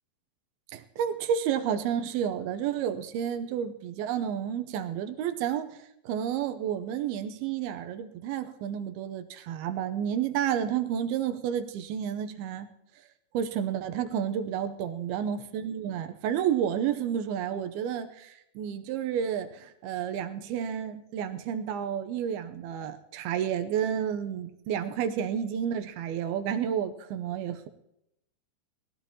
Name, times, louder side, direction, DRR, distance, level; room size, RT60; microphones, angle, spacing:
voice 1, 0.7-5.8 6.1-12.7 13.3-27.7, right 9 dB, 80° right, 8 dB, 2.6 m, -31 dB
21.0 x 16.0 x 2.9 m, 0.79 s
omnidirectional pair, 4.6 m